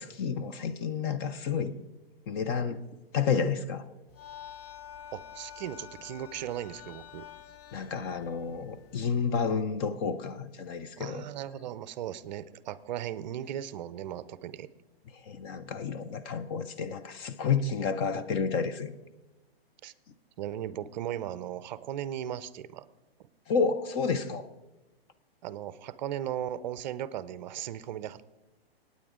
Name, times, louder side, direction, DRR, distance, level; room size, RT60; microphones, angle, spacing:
voice 1, 0.0-1.7 2.3-2.8 3.1-3.8 7.7-11.2 15.1-18.9 23.5-24.5, left 5 dB, 25° left, 10 dB, 0.5 m, -30 dB
sound 1, 4.1-9.3, left 9 dB, 40° left, 1.1 m, -48 dB
voice 2, 5.1-7.3 11.0-14.7 19.8-19.9 20.4-22.9 25.4-28.2, right 11 dB, 45° right, 16 dB, 0.6 m, -37 dB
24.5 x 9.4 x 3.7 m, 1.0 s
hypercardioid pair, 145°, 31 cm